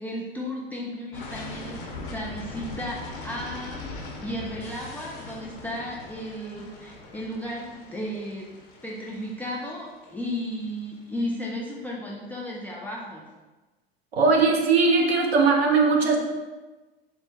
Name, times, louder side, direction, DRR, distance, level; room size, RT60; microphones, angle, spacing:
voice 1, 0.0-3.0 3.2-13.2, equal, 5° left, -4 dB, 0.3 m, -34 dB
sound 1, 1.1-10.9, left 3 dB, 55° left, 0.9 m, -40 dB
voice 2, 14.1-16.2, right 4 dB, 85° right, 2 dB, 0.6 m, -19 dB
4.2 x 2.2 x 2.9 m, 1.2 s
figure-of-eight pair, 80°, 30 cm